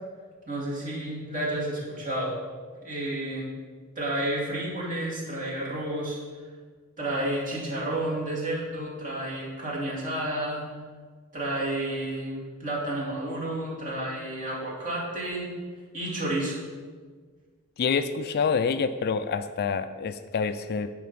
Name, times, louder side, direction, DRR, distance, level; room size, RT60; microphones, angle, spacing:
voice 1, 0.5-2.3 2.8-3.5 4.0-6.2 7.0-10.7 11.3-15.5 15.9-16.6, right 1 dB, 40° right, -5 dB, 2.6 m, -31 dB
voice 2, 17.8-20.9, left 5 dB, 45° left, 11 dB, 0.4 m, -27 dB
9.3 x 4.6 x 5.9 m, 1.5 s
head